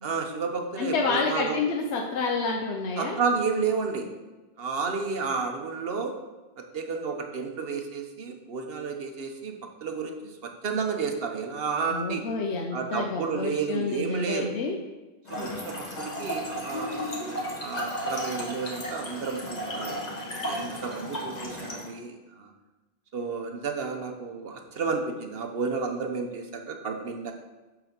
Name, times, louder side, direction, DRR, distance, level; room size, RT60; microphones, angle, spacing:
voice 1, 0.0-1.6 3.0-4.1 4.6-6.1 6.7-9.5 9.8-12.2 12.7-14.5 15.3-17.1 17.6-20.0 20.4-22.5 23.1-27.3, right 5 dB, 65° right, 4 dB, 1.1 m, -31 dB
voice 2, 0.8-3.2 11.9-14.8, left 4 dB, 90° left, 1 dB, 1.0 m, -29 dB
Trickle dribble / Fill (with liquid), 15.2-21.9, equal, 40° left, 1.5 m, -34 dB
8.3 x 4.0 x 5.9 m, 1.1 s
omnidirectional pair, 1.1 m